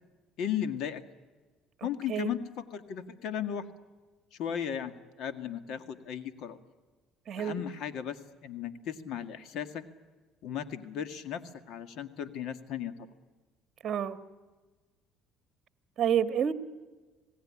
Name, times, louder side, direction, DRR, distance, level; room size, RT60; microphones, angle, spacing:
voice 1, 0.4-1.0 1.8-3.7 4.3-6.6 7.4-9.8 10.4-11.4 11.7-13.1, left 9 dB, 65° left, 2.1 m, -36 dB
voice 2, 1.8-2.3 7.3-7.6 13.8-14.2 16.0-16.5, right 9 dB, 45° right, 1.6 m, -29 dB
27.5 x 18.5 x 10.0 m
cardioid pair, 120°, 0 cm